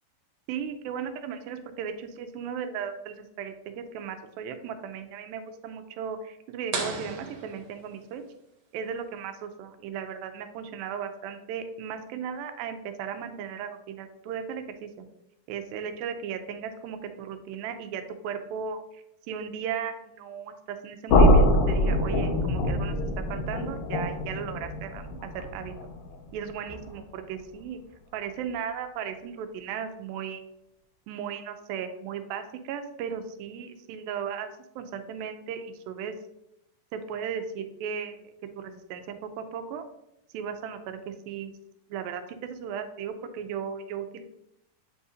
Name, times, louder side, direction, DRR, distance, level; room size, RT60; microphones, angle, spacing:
voice 1, 0.5-8.2 8.7-15.1 15.5-25.1 25.3-25.7 26.3-27.8 28.1-30.4 31.1-34.5 34.8-36.1 36.9-38.2 38.6-39.0 39.4-39.8 40.3-41.5 41.9-44.2, right 7 dB, 90° right, 7 dB, 2.4 m, -36 dB
sound 1, 6.7-8.4, right 4 dB, 70° right, 1.6 m, -35 dB
sound 2, 21.1-27.0, left 1 dB, 80° left, 2.7 m, -24 dB
7.7 x 2.7 x 4.9 m, 0.82 s
omnidirectional pair, 4.1 m